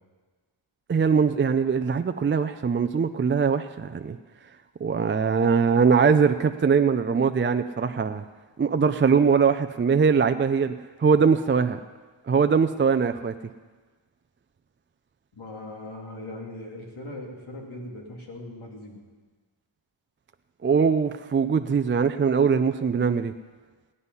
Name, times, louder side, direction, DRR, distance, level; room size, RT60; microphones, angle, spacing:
voice 1, 0.9-4.2 4.8-8.2 8.6-10.7 11.0-11.8 12.3-13.3 20.6-23.3, right 6 dB, 25° right, 9 dB, 0.4 m, -21 dB
voice 2, 15.3-19.0, left 1 dB, 75° left, -1 dB, 3.0 m, -39 dB
17.5 x 9.7 x 5.6 m, 1.4 s
wide cardioid pair, 125°, 48 cm